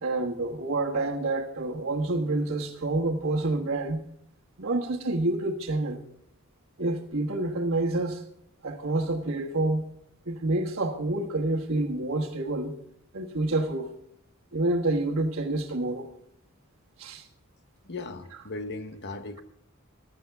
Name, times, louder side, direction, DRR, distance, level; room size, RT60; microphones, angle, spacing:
voice 1, 0.0-4.0 4.6-6.0 6.8-8.2 8.6-9.9 10.3-12.8 13.1-13.9 14.5-16.1 17.0-17.2, right 2 dB, 65° right, 1.4 m, -28 dB
voice 2, 17.8-19.4, left 3 dB, 55° left, 1.0 m, -37 dB
16.0 x 12.0 x 3.5 m
head